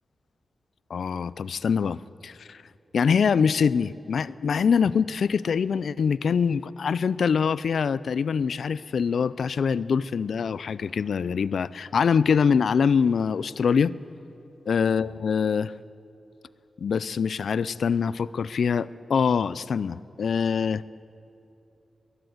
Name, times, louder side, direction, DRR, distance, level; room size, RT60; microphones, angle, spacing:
voice 1, 0.9-2.6 2.9-13.9 14.7-15.7 16.8-20.8, left 6 dB, 75° left, 19 dB, 0.5 m, -24 dB
22.0 x 13.0 x 9.5 m, 2.9 s
wide cardioid pair, 150°, 0 cm